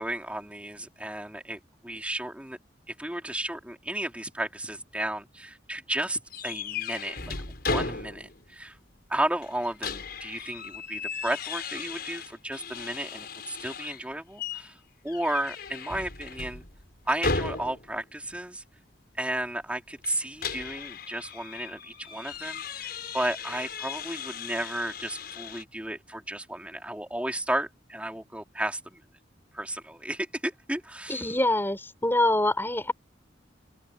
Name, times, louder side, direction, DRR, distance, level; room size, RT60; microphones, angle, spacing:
voice 1, 0.0-2.6 2.9-7.3 7.7-8.8 9.1-14.8 15.0-16.7 17.1-18.6 19.2-29.0 29.5-31.2, right 1 dB, 5° right, 3.7 m, -33 dB
sound 1, 6.3-8.5 8.8-8.9 9.4-14.0 14.4-14.7 15.1-18.0 20.0-25.6, left 4 dB, 60° left, 6.6 m, -36 dB
voice 2, 31.1-32.9, left 1 dB, 10° left, 6.2 m, -25 dB
open air
head